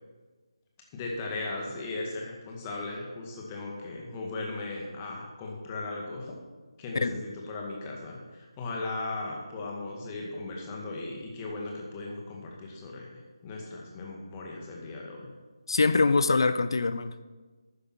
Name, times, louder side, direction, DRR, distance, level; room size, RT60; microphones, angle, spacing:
voice 1, 0.9-6.4 6.8-13.1 13.4-15.3, left 2 dB, 20° left, -1 dB, 2.0 m, -37 dB
voice 2, 15.7-17.2, left 3 dB, 60° left, 12 dB, 0.7 m, -24 dB
12.5 x 9.8 x 4.5 m, 1.3 s
figure-of-eight pair, 155°, 3 cm